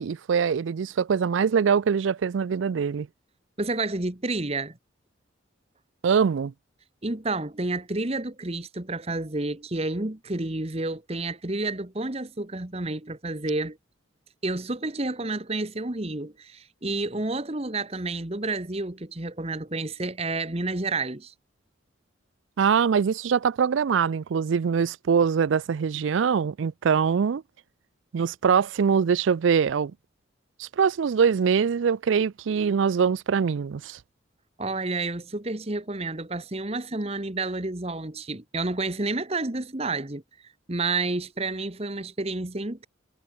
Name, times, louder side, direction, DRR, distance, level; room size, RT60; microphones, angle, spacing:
voice 1, 0.0-3.1 6.0-6.5 22.6-27.4 28.1-29.9 30.6-34.0, right 6 dB, 75° right, 0.4 m, -23 dB
voice 2, 3.6-4.8 7.0-13.8 14.4-21.3 34.6-40.2 40.7-42.9, right 2 dB, 30° right, 1.3 m, -30 dB
head